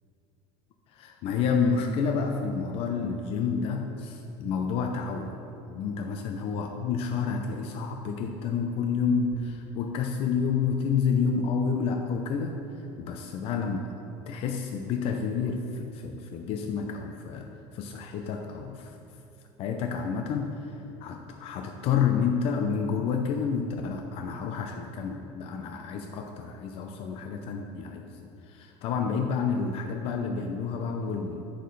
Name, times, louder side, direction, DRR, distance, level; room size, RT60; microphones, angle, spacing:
voice 1, 0.9-5.4 5.7-12.7 13.0-13.8 14.3-17.5 17.7-19.0 19.6-31.4, left 6 dB, 50° left, 3 dB, 0.6 m, -29 dB
9.4 x 6.4 x 4.0 m, 2.8 s
cardioid pair, 155°, 13 cm